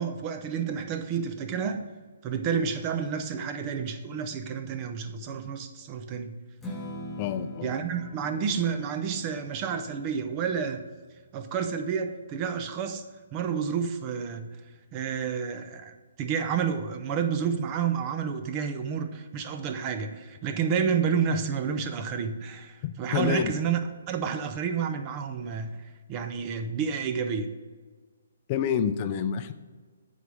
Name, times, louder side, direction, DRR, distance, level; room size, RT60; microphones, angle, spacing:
voice 1, 0.0-1.9 2.2-6.4 7.6-10.9 11.3-13.1 13.3-14.5 14.9-23.8 24.1-27.5, right 6 dB, 30° right, 8 dB, 0.7 m, -30 dB
Strum, 6.6-12.9, equal, 5° left, 1.2 m, -44 dB
voice 2, 7.2-7.7 22.8-23.5 28.5-29.5, left 8 dB, 35° left, 10 dB, 0.5 m, -28 dB
9.2 x 4.1 x 4.9 m, 1.4 s
figure-of-eight pair, 135°, 0 cm